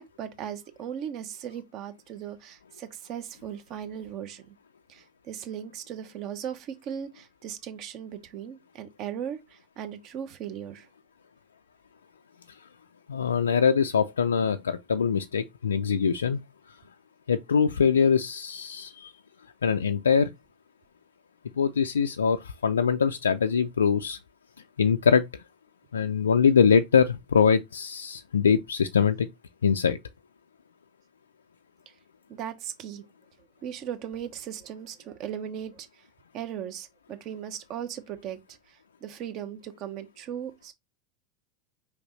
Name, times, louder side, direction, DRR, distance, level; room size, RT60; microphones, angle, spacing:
voice 1, 0.0-4.5 4.9-10.9 32.3-33.0 33.6-35.9 36.3-38.4 39.0-40.7, right 9 dB, 50° right, 1.0 m, -37 dB
voice 2, 13.1-16.4 16.7-16.8 17.3-19.1 19.6-20.3 21.6-24.2 24.8-25.4 25.9-29.3 29.6-30.0, left 6 dB, 85° left, 0.4 m, -23 dB
4.8 x 3.5 x 3.1 m
hypercardioid pair, 85°, 0 cm